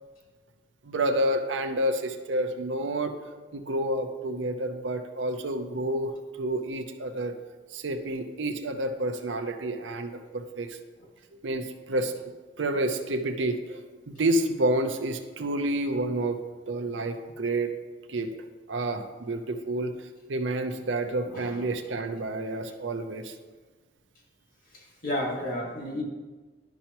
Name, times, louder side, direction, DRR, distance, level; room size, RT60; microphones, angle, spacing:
voice 1, 0.8-3.1 3.5-6.1 6.4-7.3 7.7-10.8 11.4-12.1 12.6-16.4 16.7-17.7 18.1-18.3 18.7-19.9 20.3-23.3, right 1 dB, 90° right, 7 dB, 0.6 m, -29 dB
voice 2, 25.0-26.0, left 1 dB, 50° left, -1 dB, 1.8 m, -31 dB
11.5 x 5.6 x 3.0 m, 1.3 s
head